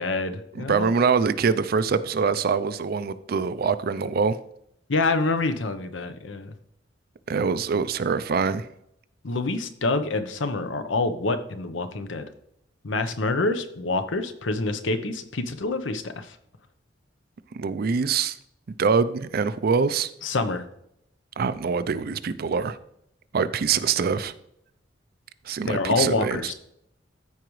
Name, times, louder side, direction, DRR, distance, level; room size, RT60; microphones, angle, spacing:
voice 1, 0.0-0.9 4.9-6.5 9.2-12.3 12.8-16.3 20.2-20.6 25.7-26.5, left 3 dB, 85° left, 9 dB, 0.8 m, -26 dB
voice 2, 0.5-4.4 7.3-8.7 17.5-18.4 18.7-20.1 21.4-22.8 23.3-24.3 25.5-26.5, right 5 dB, 55° right, 14 dB, 0.4 m, -24 dB
14.0 x 4.9 x 3.1 m, 0.74 s
head